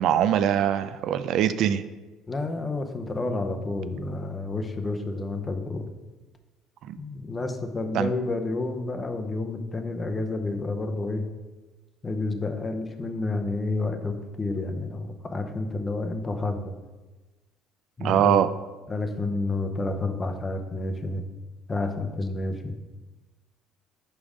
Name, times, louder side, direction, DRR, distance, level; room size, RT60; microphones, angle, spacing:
voice 1, 0.0-1.8 6.9-7.0 7.9-8.1 18.0-18.5, right 10 dB, 60° right, 12 dB, 0.3 m, -22 dB
voice 2, 2.3-5.9 7.0-11.3 12.0-16.7 18.0-18.4 18.9-21.2 21.7-22.7, left 2 dB, 20° left, 6 dB, 0.6 m, -30 dB
5.4 x 5.0 x 4.9 m, 1.2 s
cardioid pair, 125°, 0 cm